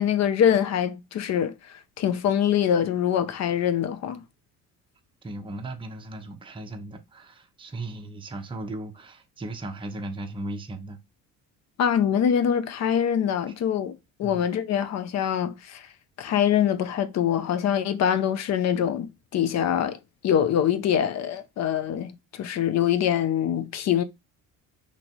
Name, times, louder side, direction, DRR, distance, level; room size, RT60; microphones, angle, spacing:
voice 1, 0.0-4.2 11.8-15.9 16.2-20.0 20.2-24.0, left 9 dB, 50° left, 0.6 m, -24 dB
voice 2, 5.2-11.0 14.2-14.5, right 2 dB, 15° right, 0.7 m, -37 dB
3.0 x 2.8 x 4.3 m
cardioid pair, 105°, 33 cm